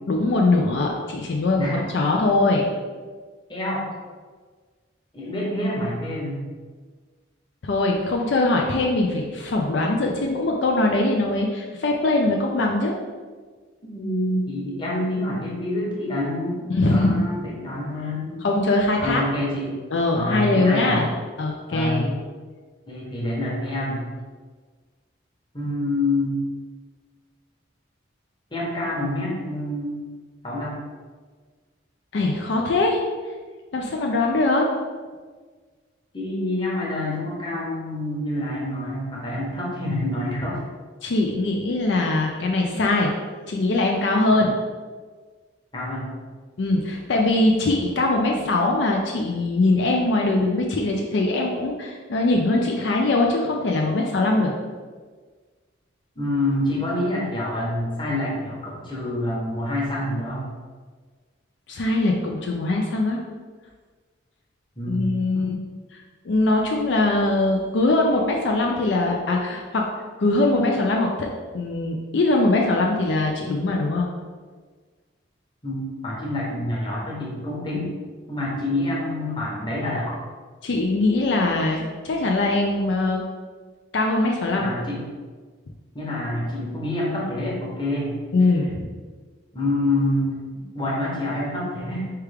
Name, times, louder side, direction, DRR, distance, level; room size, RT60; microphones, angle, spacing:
voice 1, 0.1-2.7 7.6-12.9 16.7-17.3 18.4-19.2 19.9-21.1 21.4-22.2 32.1-33.0 33.7-34.7 41.0-43.1 43.5-44.6 46.6-54.5 61.7-63.2 64.9-65.6 66.3-69.8 70.2-71.3 71.5-74.1 80.6-83.2 83.9-84.7 88.3-88.9, left 2 dB, 65° left, 0 dB, 0.4 m, -22 dB
voice 2, 3.5-3.8 5.1-6.5 13.8-18.4 19.0-19.8 20.1-21.0 21.7-22.1 22.9-24.0 25.5-26.4 28.5-30.0 30.4-30.8 36.1-40.6 44.3-44.4 45.7-46.1 56.2-60.5 64.8-65.0 65.3-65.5 75.6-77.9 78.3-80.2 84.6-85.0 85.9-88.1 89.5-90.3 90.7-92.1, left 1 dB, 25° left, -5 dB, 1.0 m, -27 dB
4.6 x 3.4 x 3.4 m, 1.5 s
head